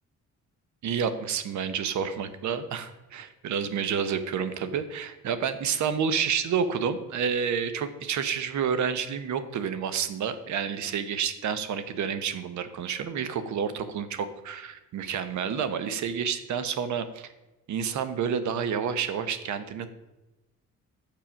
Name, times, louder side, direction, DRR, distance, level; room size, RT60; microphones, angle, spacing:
voice 1, 0.8-17.3 17.7-19.9, right 7 dB, 70° right, 11 dB, 0.9 m, -29 dB
7.5 x 6.8 x 6.2 m, 1.0 s
cardioid pair, 90°, 30 cm